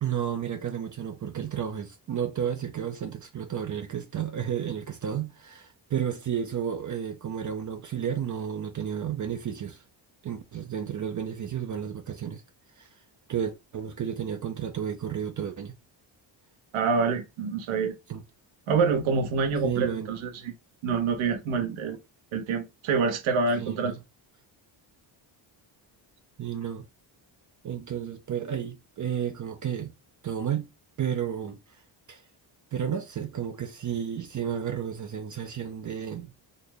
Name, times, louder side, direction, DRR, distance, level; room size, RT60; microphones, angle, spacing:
voice 1, 0.0-9.8 10.2-12.4 12.8-13.0 13.3-15.8 18.1-18.2 19.6-20.1 23.6-24.0 26.4-26.9 27.6-29.9 30.2-30.7 31.0-31.8 32.1-32.3 32.7-36.3, right 8 dB, 40° right, 0.5 m, -32 dB
voice 2, 16.7-17.9 18.7-20.5 20.8-22.0 22.3-24.0, right 5 dB, 85° right, 1.0 m, -26 dB
4.0 x 2.1 x 3.3 m
cardioid pair, 105°, 47 cm